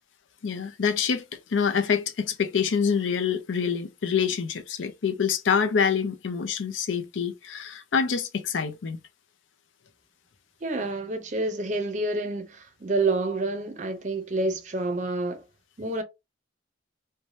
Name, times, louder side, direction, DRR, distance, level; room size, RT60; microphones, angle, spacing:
voice 1, 0.4-9.0, left 6 dB, 80° left, 0.5 m, -26 dB
voice 2, 10.6-15.4 15.8-16.0, right 2 dB, 40° right, 0.5 m, -28 dB
2.7 x 2.1 x 3.0 m
head